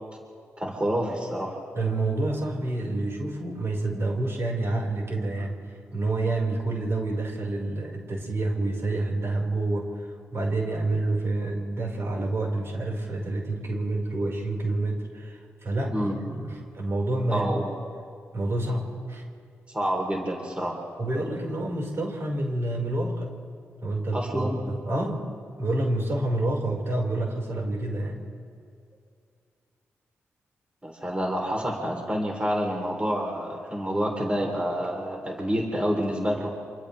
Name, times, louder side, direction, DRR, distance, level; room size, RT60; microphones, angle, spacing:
voice 1, 0.6-1.6 15.9-16.1 17.3-17.7 19.7-20.8 24.1-24.6 30.8-36.5, equal, 20° right, 0 dB, 4.0 m, -28 dB
voice 2, 1.7-5.6 5.9-9.9 10.3-17.5 18.3-19.2 21.0-23.3 23.8-25.3 25.6-28.2, right 2 dB, 55° right, 0 dB, 5.5 m, -28 dB
29.0 x 26.0 x 3.6 m, 2.3 s
supercardioid pair, 50°, 5 cm